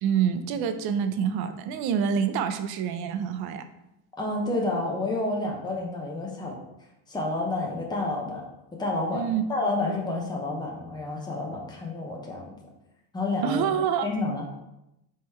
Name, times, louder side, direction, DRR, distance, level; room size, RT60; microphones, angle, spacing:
voice 1, 0.0-3.7 9.1-9.4 13.4-14.0, right 7 dB, 65° right, 9 dB, 0.5 m, -26 dB
voice 2, 4.2-6.6 7.1-8.5 8.8-12.6 13.1-13.7 14.0-14.4, left 2 dB, 10° left, -1 dB, 0.7 m, -29 dB
3.6 x 3.2 x 4.2 m, 0.87 s
cardioid pair, 135°, 41 cm